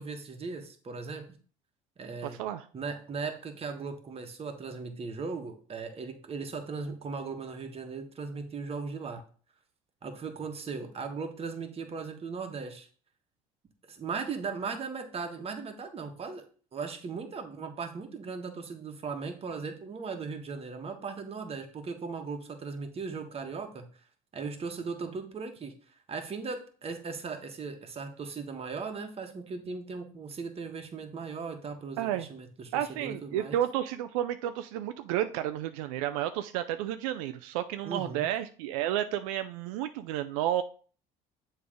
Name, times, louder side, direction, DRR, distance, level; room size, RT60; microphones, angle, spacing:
voice 1, 0.0-1.3 2.0-2.4 2.7-9.2 10.0-12.9 13.9-16.4 16.7-23.9 24.3-25.7 26.1-33.6 37.8-38.3, right 4 dB, 35° right, 5 dB, 1.4 m, -38 dB
voice 2, 2.2-2.7 32.0-32.3 32.7-40.6, right 12 dB, 90° right, 10 dB, 0.4 m, -31 dB
7.0 x 3.3 x 5.0 m, 0.41 s
supercardioid pair, 85°, 17 cm